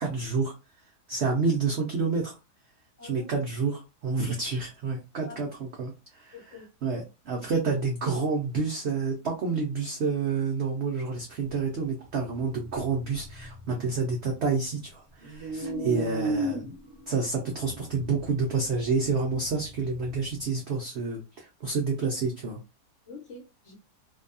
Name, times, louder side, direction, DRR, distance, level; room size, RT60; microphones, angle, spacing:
voice 1, 0.0-0.5 1.1-2.4 3.0-16.7 17.1-22.6, right 4 dB, 70° right, 0.6 m, -29 dB
voice 2, 3.0-3.3 5.2-5.4 6.3-6.7 15.6-15.9 23.1-23.7, left 3 dB, 55° left, 1.0 m, -43 dB
sound 1, 12.3-14.9 15.2-20.4, right 2 dB, 30° right, 1.3 m, -36 dB
2.7 x 2.2 x 2.6 m
omnidirectional pair, 1.7 m